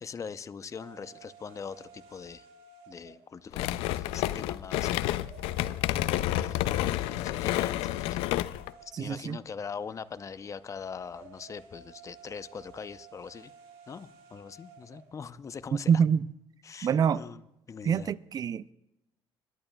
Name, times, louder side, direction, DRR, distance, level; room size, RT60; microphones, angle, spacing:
voice 1, 0.0-2.5 2.9-5.2 6.4-8.2 8.8-13.5 13.9-15.9 16.6-17.4 17.7-18.1, left 6 dB, 35° left, 13 dB, 0.6 m, -42 dB
sound 1, 0.7-15.2, right 6 dB, 90° right, 1.8 m, -55 dB
sound 2, 3.5-8.7, left 15 dB, 85° left, 0.3 m, -29 dB
voice 2, 8.9-9.4 15.7-16.3 16.8-17.2 17.8-18.7, right 7 dB, 45° right, 19 dB, 0.4 m, -26 dB
27.0 x 11.0 x 2.3 m, 0.89 s
cardioid pair, 85°, 9 cm